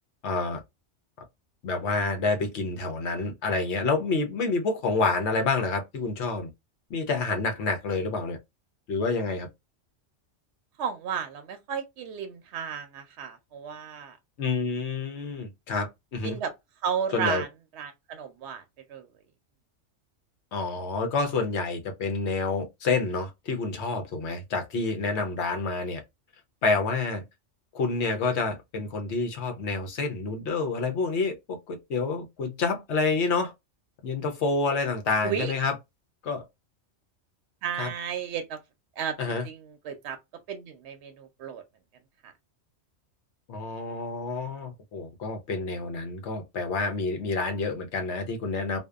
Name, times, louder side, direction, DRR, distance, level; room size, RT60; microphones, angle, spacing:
voice 1, 0.2-0.6 1.6-6.5 6.9-8.4 8.9-9.5 14.4-16.4 17.1-17.4 20.5-26.0 26.6-27.2 27.7-33.5 34.0-35.7 36.2-36.4 37.8-37.9 39.2-39.5 43.5-48.8, left 4 dB, 70° left, 0.9 m, -28 dB
voice 2, 10.8-14.2 16.2-16.5 16.8-17.5 17.8-18.6 18.9-19.0 35.2-35.5 37.6-38.6 39.0-39.1 39.4-39.6 39.8-40.2 40.5-41.6 42.2-42.3, right 7 dB, 70° right, 0.8 m, -33 dB
2.7 x 2.1 x 2.2 m
omnidirectional pair, 1.2 m